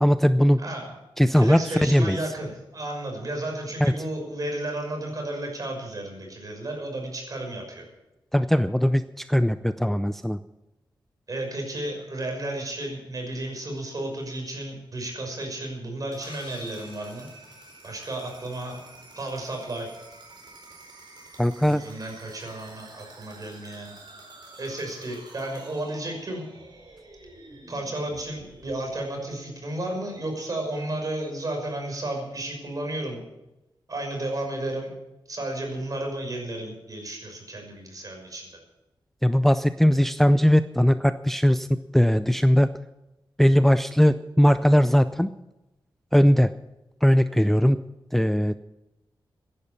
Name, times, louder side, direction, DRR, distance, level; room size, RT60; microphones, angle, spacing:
voice 1, 0.0-0.6 1.2-2.2 3.8-3.9 8.3-10.4 21.4-21.8 39.2-42.7 43.4-45.3 46.1-46.5 47.0-47.8 48.1-48.6, equal, 5° left, 11 dB, 0.5 m, -20 dB
voice 2, 1.3-7.9 11.3-17.3 17.8-18.8 19.1-19.9 21.7-24.0 24.6-26.4 27.7-33.2 33.9-34.9 35.3-38.6, right 1 dB, 45° right, 2 dB, 6.0 m, -33 dB
sound 1, 16.0-29.8, right 2 dB, 60° right, 4.6 m, -49 dB
sound 2, 16.2-18.4, left 4 dB, 90° left, 2.6 m, -51 dB
15.5 x 11.0 x 7.0 m, 0.96 s
wide cardioid pair, 105°, 8 cm